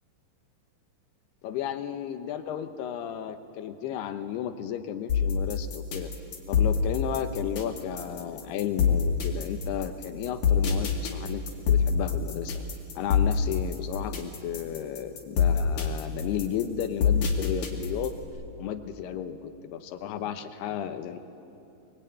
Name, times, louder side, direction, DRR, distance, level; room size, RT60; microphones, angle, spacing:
voice 1, 1.4-6.1 6.5-12.6 13.0-18.2 18.6-21.2, left 9 dB, 75° left, 8 dB, 2.9 m, -33 dB
sound 1, 5.1-18.2, left 6 dB, 50° left, 3.3 m, -25 dB
24.0 x 22.0 x 9.0 m, 2.7 s
omnidirectional pair, 5.0 m